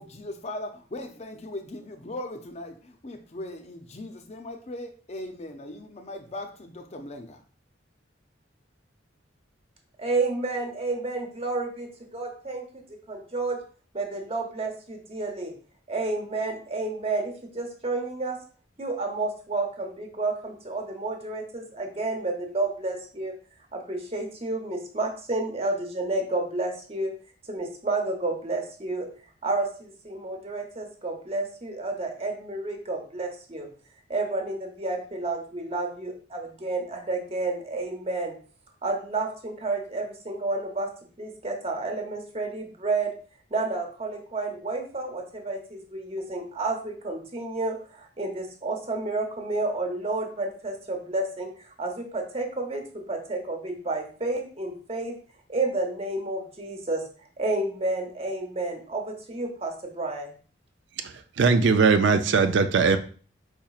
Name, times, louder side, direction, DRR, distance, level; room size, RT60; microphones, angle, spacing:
voice 1, 0.0-7.4, left 1 dB, 35° left, 5 dB, 0.5 m, -39 dB
voice 2, 10.0-13.6 13.9-15.5 15.9-18.4 18.8-23.3 23.7-27.1 27.5-29.1 29.4-33.7 34.1-38.3 38.8-40.9 41.2-43.1 43.5-55.1 55.5-57.0 57.4-60.4, right 2 dB, 30° right, 3 dB, 0.9 m, -30 dB
voice 3, 61.0-63.0, right 4 dB, 65° right, 8 dB, 0.4 m, -20 dB
4.8 x 4.2 x 2.4 m, 0.41 s
head